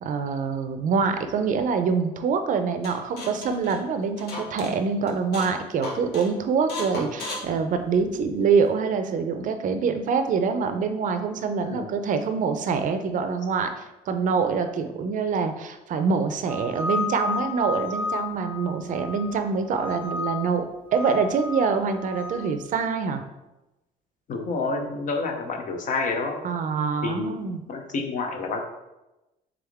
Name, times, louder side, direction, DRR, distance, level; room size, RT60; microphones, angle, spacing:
voice 1, 0.0-20.6 20.9-23.2 26.4-27.6, right 5 dB, 50° right, 8 dB, 0.5 m, -25 dB
sound 1, 2.8-4.7 5.1-5.6 5.8-6.3 6.7-8.3, left 2 dB, 75° left, 1.0 m, -35 dB
sound 2, 16.5-19.4 19.8-20.5 20.9-22.4, left 4 dB, 5° left, 0.4 m, -32 dB
voice 2, 24.3-26.4 27.0-27.4 27.7-28.6, left 3 dB, 50° left, 3 dB, 0.7 m, -29 dB
3.6 x 3.5 x 3.5 m, 0.99 s
cardioid pair, 110°, 17 cm